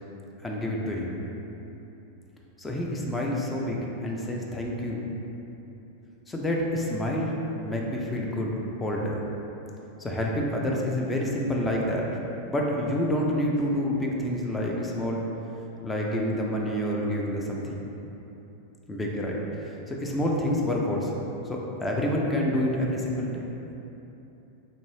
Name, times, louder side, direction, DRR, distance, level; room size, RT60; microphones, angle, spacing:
voice 1, 0.4-1.2 2.6-5.1 6.3-7.4 7.6-9.2 10.0-12.1 12.4-15.2 15.8-17.9 18.9-21.1 21.5-23.5, left 1 dB, 10° left, -2 dB, 0.4 m, -28 dB
3.2 x 2.6 x 3.1 m, 3.0 s
figure-of-eight pair, 90°, 0 cm